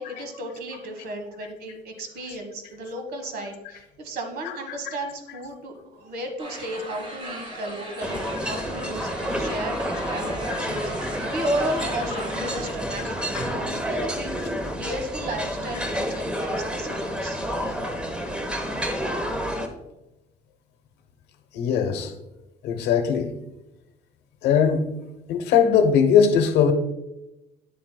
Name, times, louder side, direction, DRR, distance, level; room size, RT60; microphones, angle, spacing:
voice 1, 0.0-9.8 10.1-14.3 14.8-17.4, right 1 dB, 65° right, 1.4 m, -34 dB
sound 1, 6.4-12.7, right 1 dB, 40° right, 2.8 m, -38 dB
sound 2, 8.0-19.7, equal, 5° right, 0.9 m, -29 dB
voice 2, 21.5-22.1 22.6-23.3 24.4-24.8 25.3-26.7, left 7 dB, 85° left, 0.9 m, -20 dB
8.7 x 7.7 x 2.2 m
cardioid pair, 110°, 17 cm